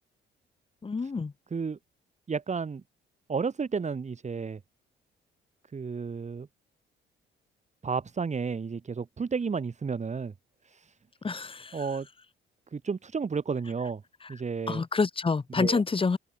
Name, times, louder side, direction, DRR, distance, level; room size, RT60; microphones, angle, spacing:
voice 1, 0.8-1.3 11.2-11.8 14.7-16.2, left 4 dB, 25° left, 1.9 m, -27 dB
voice 2, 2.3-2.8 3.3-4.6 5.7-6.5 7.8-10.3 10.6-10.9 11.7-12.1 12.7-14.0 14.3-14.8 15.5-15.8, right 5 dB, 35° right, 4.4 m, -32 dB
cardioid pair, 90°, 20 cm